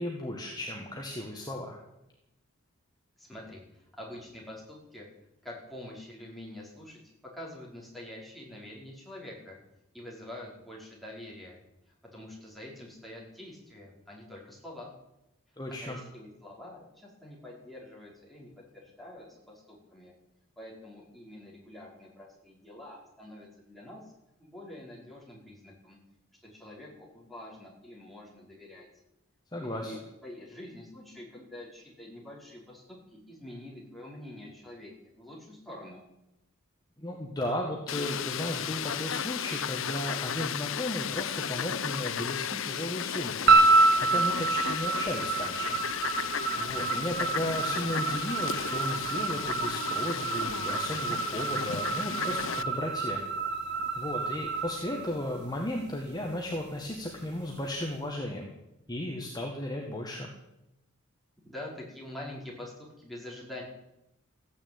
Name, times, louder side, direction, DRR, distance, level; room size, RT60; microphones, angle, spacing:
voice 1, 0.0-1.8 15.6-16.0 29.5-29.9 37.0-43.5 44.0-45.8 46.5-53.2 54.0-58.5 58.9-60.3, left 1 dB, 20° left, 0 dB, 1.8 m, -35 dB
voice 2, 3.2-5.1 5.4-7.0 7.3-9.6 9.9-11.6 11.9-14.9 15.8-20.1 20.6-24.1 24.4-26.0 26.4-28.9 29.5-30.0 30.2-36.0 54.6-54.7 61.4-63.6, left 1 dB, ahead, -5 dB, 5.1 m, -46 dB
Fowl, 37.9-52.6, left 8 dB, 65° left, 0.7 m, -34 dB
sound 1, 43.5-55.8, right 3 dB, 55° right, 2.0 m, -28 dB
15.0 x 10.0 x 9.0 m, 0.88 s
head